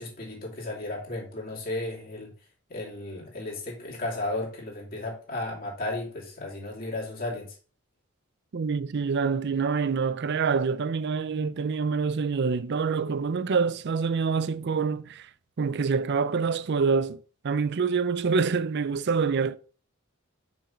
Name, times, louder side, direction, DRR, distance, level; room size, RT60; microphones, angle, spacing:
voice 1, 0.0-2.3 2.7-7.5, left 2 dB, 45° left, 2.6 m, -34 dB
voice 2, 8.5-15.3 15.6-19.6, right 5 dB, 55° right, 0.5 m, -26 dB
6.0 x 4.7 x 5.5 m
head